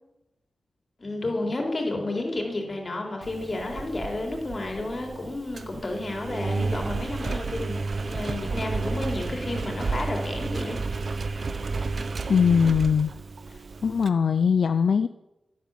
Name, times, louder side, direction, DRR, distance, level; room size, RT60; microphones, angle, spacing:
voice 1, 1.0-10.8, left 2 dB, 40° left, 2 dB, 3.8 m, -31 dB
Engine, 3.2-14.1, right 3 dB, 55° right, 1.0 m, -32 dB
voice 2, 12.3-13.1 13.8-15.1, left 6 dB, 75° left, 10 dB, 0.5 m, -21 dB
11.5 x 11.0 x 7.6 m, 0.93 s
wide cardioid pair, 75°, 0 cm